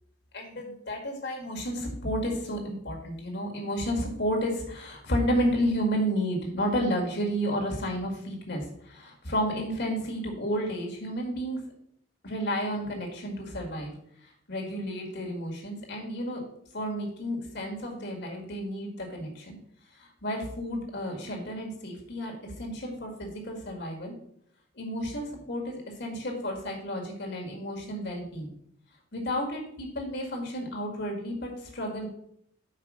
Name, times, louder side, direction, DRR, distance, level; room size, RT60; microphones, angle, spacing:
voice 1, 0.3-11.6 12.2-13.9 14.5-16.4 16.7-19.6 20.0-24.1 24.8-28.5 29.1-32.1, equal, 55° left, 0 dB, 1.9 m, -31 dB
5.8 x 4.8 x 6.1 m, 0.71 s
head